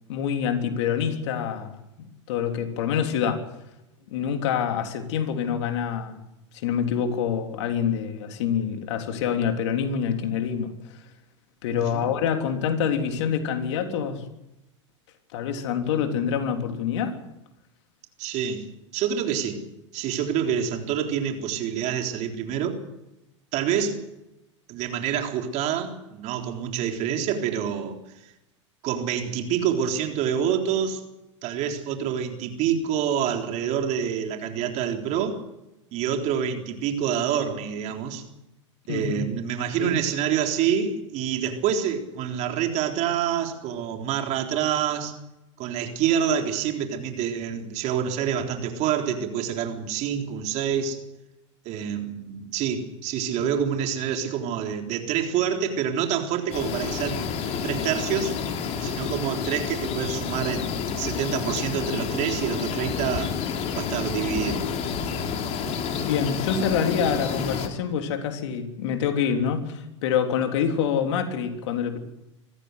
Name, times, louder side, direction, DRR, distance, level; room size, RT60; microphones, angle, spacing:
voice 1, 0.1-3.4 4.1-6.2 6.6-10.7 11.6-14.2 15.3-17.2 38.9-39.2 39.8-39.9 53.4-53.5 66.0-72.0, left 7 dB, 65° left, 6 dB, 3.4 m, -26 dB
voice 2, 11.7-12.1 18.2-18.7 18.9-19.6 19.9-22.8 23.5-24.0 24.7-28.0 28.8-31.0 31.4-35.4 35.9-38.2 38.9-45.1 45.6-51.0 51.7-57.2 57.6-58.4 58.8-63.3 63.8-64.6, right 8 dB, 50° right, 4 dB, 3.8 m, -27 dB
sound 1, 56.5-67.7, left 6 dB, 45° left, 3.4 m, -29 dB
24.5 x 15.0 x 8.0 m, 0.92 s
hypercardioid pair, 95°, 16 cm